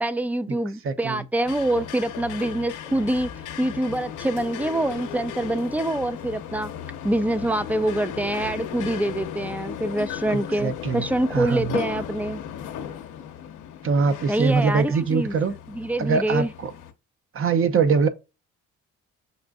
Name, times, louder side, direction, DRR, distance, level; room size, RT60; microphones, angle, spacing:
voice 1, 0.0-3.3 3.6-6.7 7.0-12.4 14.3-15.4 15.7-16.5, right 1 dB, 5° right, 0.3 m, -25 dB
voice 2, 0.8-1.2 10.3-11.1 11.3-11.8 13.8-15.5 16.0-16.7 17.3-18.1, right 5 dB, 45° right, 0.7 m, -23 dB
sound 1, 1.4-16.9, left 9 dB, 80° left, 0.8 m, -36 dB
6.4 x 2.5 x 2.3 m
cardioid pair, 90°, 30 cm